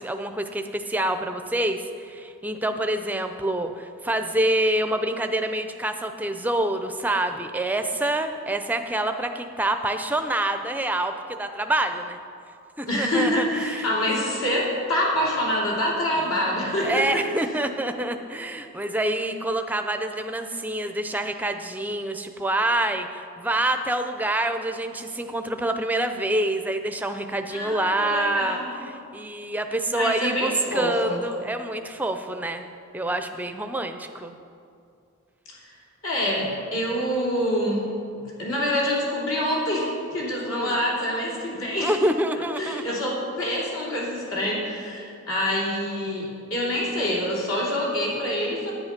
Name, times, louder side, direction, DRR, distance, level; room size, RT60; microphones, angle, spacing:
voice 1, 0.0-12.2 12.8-13.9 16.8-32.7 32.9-34.4 40.5-40.8 41.8-43.0, right 1 dB, 5° right, 7 dB, 0.5 m, -27 dB
voice 2, 12.9-17.2 27.5-28.8 29.9-31.2 36.0-41.9 42.3-48.7, equal, 70° left, -4 dB, 3.0 m, -26 dB
10.5 x 9.5 x 5.9 m, 2.4 s
head